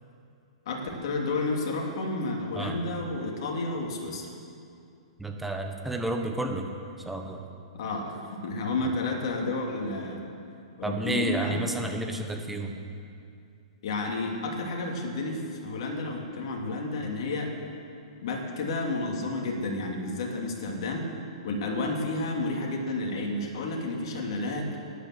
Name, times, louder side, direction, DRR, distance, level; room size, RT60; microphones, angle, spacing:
voice 1, 0.7-4.3 7.8-10.2 10.8-11.6 13.8-17.5 18.2-21.1 21.4-24.8, left 2 dB, 60° left, 0 dB, 2.8 m, -31 dB
voice 2, 5.2-6.7 7.0-7.4 10.8-12.8, right 2 dB, 5° right, 3 dB, 1.3 m, -31 dB
13.0 x 10.0 x 7.9 m, 2.5 s
hypercardioid pair, 125°, 3 cm